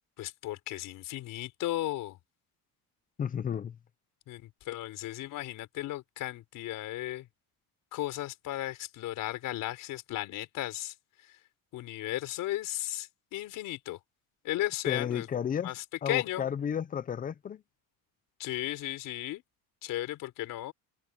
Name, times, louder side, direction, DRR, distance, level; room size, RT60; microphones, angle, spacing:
voice 1, 0.2-2.2 4.3-7.3 7.9-10.9 11.7-14.0 14.4-15.3 15.6-16.4 18.4-19.4 19.8-20.7, left 15 dB, 60° left, 4.0 m, -35 dB
voice 2, 3.2-3.8 14.9-15.7 16.0-17.6, left 8 dB, 25° left, 0.5 m, -32 dB
cardioid pair, 180°, 36 cm